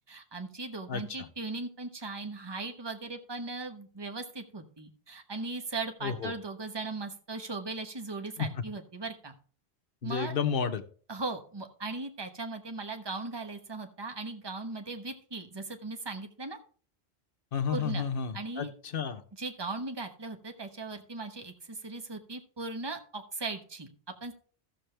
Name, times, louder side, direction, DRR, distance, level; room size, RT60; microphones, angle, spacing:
voice 1, 0.1-9.3 10.0-10.3 11.1-16.6 17.7-18.0 18.3-18.7 19.4-23.9 24.2-24.3, right 3 dB, 25° right, 6 dB, 1.1 m, -38 dB
voice 2, 0.9-1.3 6.0-6.3 8.4-8.6 10.0-10.8 17.5-19.2, left 6 dB, 60° left, 7 dB, 1.1 m, -32 dB
14.0 x 7.0 x 3.3 m, 0.43 s
omnidirectional pair, 1.1 m